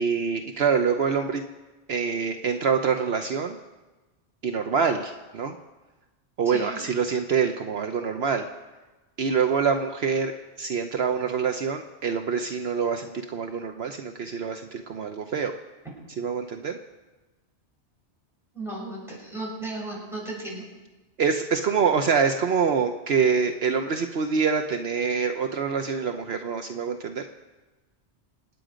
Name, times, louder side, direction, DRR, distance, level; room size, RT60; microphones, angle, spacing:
voice 1, 0.0-1.5 1.9-3.6 4.4-5.5 6.4-8.5 9.2-15.5 16.2-16.8 21.2-27.3, right 6 dB, 65° right, 6 dB, 1.1 m, -25 dB
voice 2, 6.5-6.8 18.5-20.7, right 2 dB, ahead, -5 dB, 6.9 m, -35 dB
26.5 x 9.7 x 5.1 m, 1.2 s
omnidirectional pair, 1.2 m